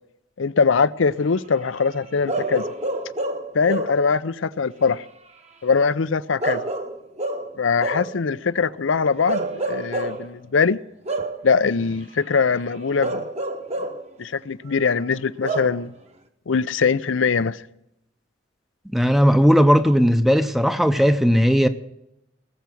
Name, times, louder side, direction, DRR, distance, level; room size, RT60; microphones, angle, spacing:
voice 1, 0.4-2.6 3.5-5.0 5.6-6.6 7.6-10.8 11.4-13.2 14.2-15.9 16.5-17.6, left 5 dB, 85° left, 0.6 m, -22 dB
Bark / Livestock farm animals working animals, 2.3-4.1 6.4-8.2 9.3-10.3 11.1-11.5 13.0-14.1 15.4-15.8, right 2 dB, 35° right, 1.1 m, -27 dB
voice 2, 18.9-21.7, equal, ahead, 0.7 m, -17 dB
19.5 x 7.1 x 7.7 m
head